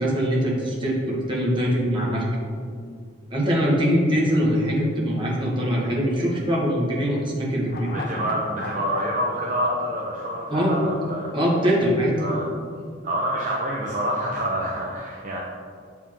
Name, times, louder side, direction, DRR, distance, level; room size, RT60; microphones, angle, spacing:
voice 1, 0.0-2.3 3.3-7.9 10.5-10.8 11.3-12.1, equal, 25° right, -4 dB, 1.5 m, -22 dB
sound 1, 7.6-11.0 11.3-11.4, left 3 dB, 50° left, 0.5 m, -37 dB
voice 2, 7.8-11.3 12.2-12.5 13.0-15.4, equal, 45° right, -3 dB, 0.7 m, -27 dB
7.0 x 4.9 x 3.6 m, 2.1 s
head